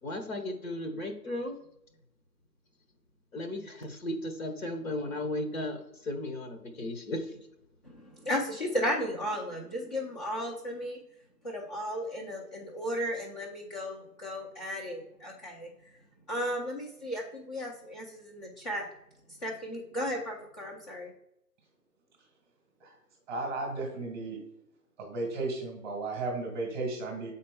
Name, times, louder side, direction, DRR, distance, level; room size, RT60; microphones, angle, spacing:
voice 1, 0.0-1.5 3.3-7.4, left 1 dB, 55° left, 6 dB, 1.4 m, -35 dB
voice 2, 7.8-11.0 11.4-15.7 16.3-18.9 19.4-21.1, equal, 25° left, -3 dB, 0.8 m, -35 dB
voice 3, 23.3-24.4 25.0-27.3, right 3 dB, 15° right, -2 dB, 1.2 m, -34 dB
7.3 x 4.3 x 3.5 m, 0.79 s
figure-of-eight pair, 150°, 50 cm